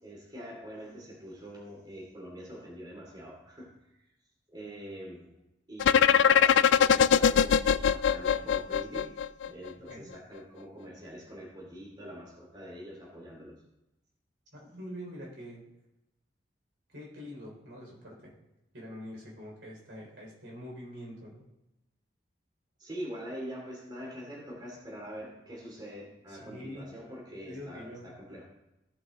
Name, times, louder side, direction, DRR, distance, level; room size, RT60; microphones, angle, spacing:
voice 1, 0.0-3.7 4.5-5.3 5.7-9.1 9.4-13.6 22.8-28.4, equal, 25° right, -3 dB, 2.6 m, -44 dB
sound 1, 5.8-9.7, left 7 dB, 85° left, 0.3 m, -22 dB
voice 2, 14.5-15.6 16.9-18.3 18.7-21.4 26.3-26.9 27.3-28.1, equal, 85° right, -3 dB, 3.7 m, -45 dB
16.0 x 5.5 x 3.7 m, 0.93 s
head